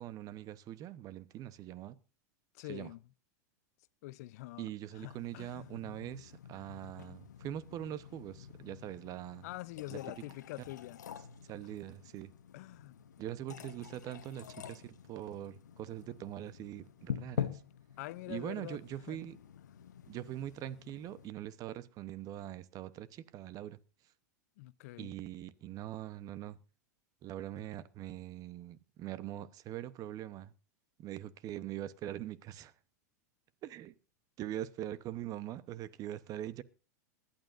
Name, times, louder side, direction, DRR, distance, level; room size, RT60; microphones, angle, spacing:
voice 1, 0.0-2.0 2.7-2.9 4.6-9.4 9.9-10.0 11.5-12.3 13.2-17.6 18.3-19.4 20.1-23.8 25.0-26.6 27.2-30.5 31.0-32.7 33.6-33.9 34.4-36.6, right 12 dB, 40° right, 0.9 m, -42 dB
voice 2, 2.5-3.0 4.0-5.7 9.4-11.1 12.5-13.0 18.0-18.8 19.1-19.2 24.6-25.1, left 18 dB, 65° left, 0.6 m, -45 dB
sound 1, 5.0-21.3, left 9 dB, 90° left, 0.9 m, -46 dB
21.0 x 11.5 x 2.6 m
hypercardioid pair, 105°, 9 cm